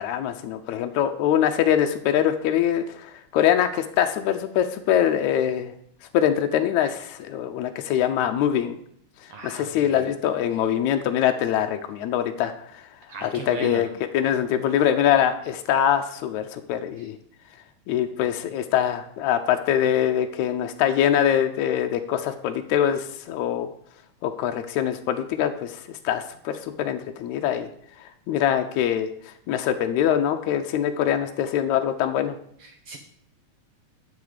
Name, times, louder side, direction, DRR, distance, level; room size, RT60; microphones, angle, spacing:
voice 1, 0.0-5.7 6.1-8.8 9.4-12.8 13.2-13.9 14.1-17.2 17.9-23.7 24.2-27.7 28.3-29.1 29.5-32.4, left 10 dB, 80° left, 6 dB, 1.9 m, -23 dB
voice 2, 9.3-10.1 13.1-13.9 17.0-17.1 32.6-33.0, right 5 dB, 75° right, 5 dB, 1.3 m, -37 dB
10.5 x 7.2 x 5.0 m, 0.67 s
omnidirectional pair, 3.4 m